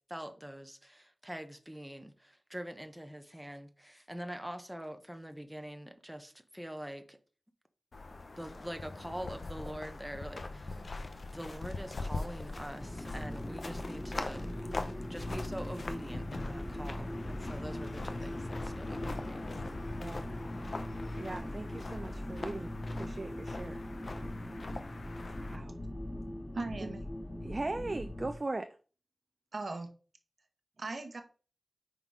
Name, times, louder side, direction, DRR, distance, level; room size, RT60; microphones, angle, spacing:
voice 1, 0.1-7.2 8.4-10.8 11.3-14.5 15.1-19.4, equal, 5° right, 0.8 m, -44 dB
sound 1, 7.9-25.6, left 3 dB, 65° left, 0.7 m, -42 dB
sound 2, 12.7-28.4, left 1 dB, 35° left, 1.9 m, -40 dB
voice 2, 21.2-23.8 25.5-25.8 26.8-26.9 27.4-28.7, right 2 dB, 40° right, 0.4 m, -39 dB
voice 3, 26.5-27.0 29.5-29.9 30.8-31.2, right 3 dB, 65° right, 1.0 m, -38 dB
5.5 x 3.9 x 4.7 m
wide cardioid pair, 65°, 0 cm